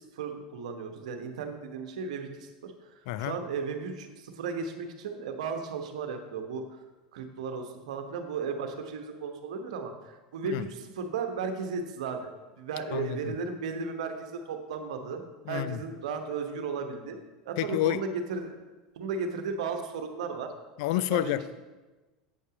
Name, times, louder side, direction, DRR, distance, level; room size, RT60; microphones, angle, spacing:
voice 1, 0.0-6.6 7.1-9.9 10.3-15.2 15.5-17.2 17.4-18.5 19.0-20.5 21.1-21.5, right 5 dB, 75° right, 6 dB, 1.1 m, -35 dB
voice 2, 3.1-3.4 10.5-10.7 12.9-13.3 15.5-15.8 17.6-18.0 20.8-21.5, left 14 dB, 65° left, 15 dB, 0.4 m, -29 dB
8.3 x 5.5 x 5.0 m, 1.2 s
hypercardioid pair, 90°, 4 cm